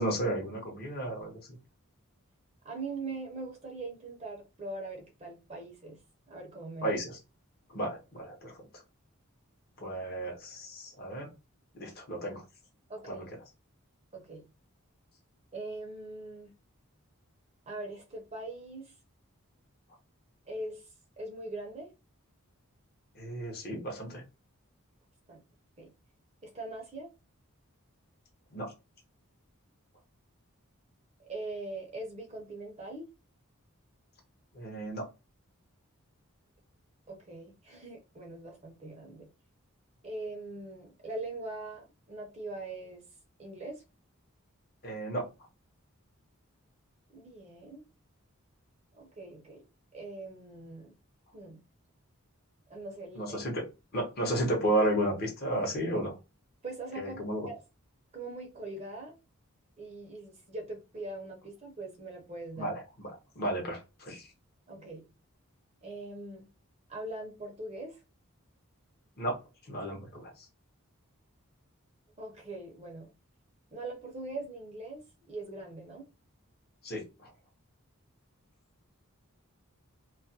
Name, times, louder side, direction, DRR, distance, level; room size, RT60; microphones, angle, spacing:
voice 1, 0.0-1.3 6.8-7.1 7.7-8.5 9.8-11.3 11.8-12.4 13.1-13.2 23.2-24.2 28.5-28.7 34.6-35.0 44.8-45.2 53.2-53.6 53.9-56.1 57.0-57.5 62.6-62.8 63.4-63.8 64.1-64.3 69.2-69.3 69.7-70.3 76.8-77.0, right 1 dB, 45° left, 1 dB, 0.7 m, -32 dB
voice 2, 2.6-6.0 6.3-7.0 12.9-13.3 14.1-14.4 15.5-16.5 17.7-18.9 20.5-20.9 21.2-21.9 25.3-25.4 25.8-25.9 26.4-27.1 31.2-33.1 37.1-39.3 40.0-43.0 43.4-43.8 47.1-47.8 48.9-49.6 49.9-50.9 51.3-51.6 52.7-53.4 56.6-57.6 58.1-59.1 59.8-62.7 64.7-65.0 65.8-66.4 66.9-68.0 72.2-73.1 73.7-75.0 75.3-76.0, right 2 dB, 30° right, 1 dB, 0.5 m, -41 dB
2.3 x 2.1 x 2.6 m, 0.28 s
head